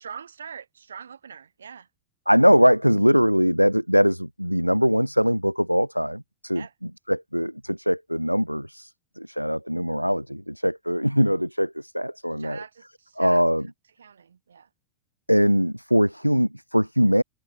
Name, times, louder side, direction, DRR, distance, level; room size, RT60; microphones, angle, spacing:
voice 1, 0.0-1.9 6.5-6.7 12.4-13.4 14.0-14.7, right 7 dB, 70° right, 4.0 m, -43 dB
voice 2, 2.3-6.6 7.1-8.9 9.2-12.6 13.2-13.6 15.3-17.2, equal, 90° right, 0.7 m, -21 dB
figure-of-eight pair, 90°, 0 cm